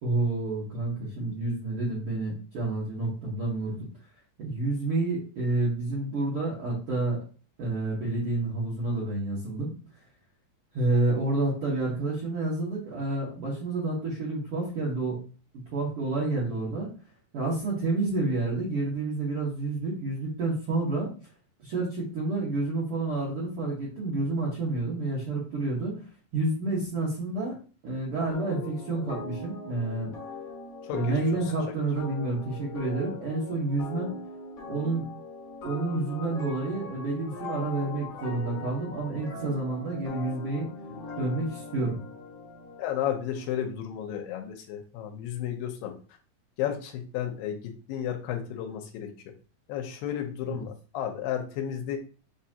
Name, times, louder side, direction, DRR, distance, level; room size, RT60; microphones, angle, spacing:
voice 1, 0.0-3.8 4.4-7.2 7.6-9.7 10.7-15.2 15.5-16.9 17.3-21.1 21.6-26.0 26.3-27.6 27.8-30.1 30.9-34.1 34.7-35.0 35.6-40.7 41.2-42.0 50.4-50.6, right 2 dB, 80° right, -6 dB, 1.2 m, -29 dB
sound 1, 28.3-42.9, left 4 dB, 55° left, 1.8 m, -41 dB
voice 2, 30.9-31.4 42.8-45.9 46.6-49.1 49.7-52.0, left 10 dB, 75° left, 4 dB, 2.2 m, -33 dB
6.7 x 2.4 x 2.8 m, 0.37 s
omnidirectional pair, 4.4 m